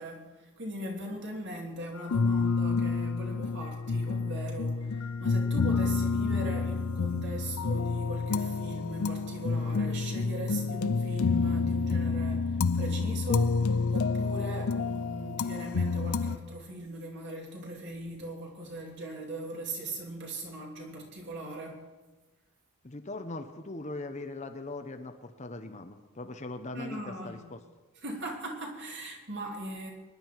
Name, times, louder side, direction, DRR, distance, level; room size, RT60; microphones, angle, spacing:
voice 1, 0.0-13.6 13.9-21.9 26.7-27.4 28.0-29.9, right 1 dB, 50° right, 0 dB, 3.1 m, -40 dB
sound 1, 2.1-16.4, left 4 dB, 75° left, 0.6 m, -29 dB
voice 2, 22.8-27.6, left 2 dB, 30° left, 7 dB, 0.9 m, -40 dB
24.5 x 11.0 x 4.7 m, 1.2 s
head